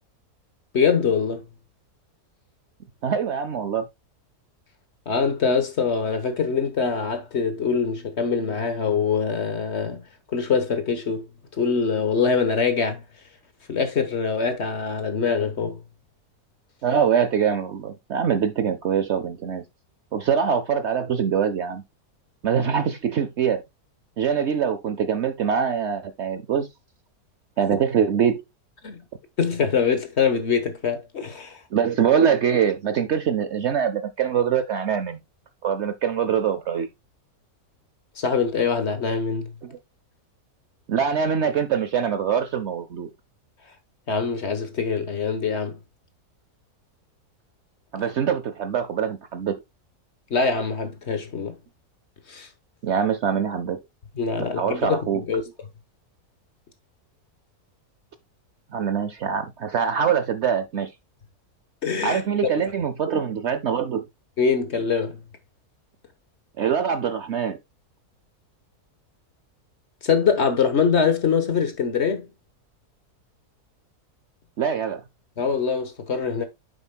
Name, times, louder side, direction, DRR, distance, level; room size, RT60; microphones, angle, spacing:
voice 1, 0.7-1.4 5.1-11.3 11.6-13.0 13.7-15.8 28.8-29.0 29.4-31.6 38.2-39.5 44.1-45.8 50.3-51.6 52.3-52.5 54.1-55.4 61.8-62.6 64.4-65.2 70.0-72.3 75.4-76.4, left 5 dB, 50° left, 1.4 m, -24 dB
voice 2, 3.0-3.9 16.8-19.6 20.1-21.8 22.4-23.6 24.2-26.7 27.6-28.4 31.7-35.2 35.6-36.9 39.6-39.8 40.9-43.1 47.9-49.6 52.8-53.8 54.4-55.2 58.7-60.9 62.0-64.1 66.6-67.6 74.6-75.0, right 7 dB, 60° right, 0.8 m, -23 dB
9.1 x 7.1 x 2.2 m
omnidirectional pair, 1.6 m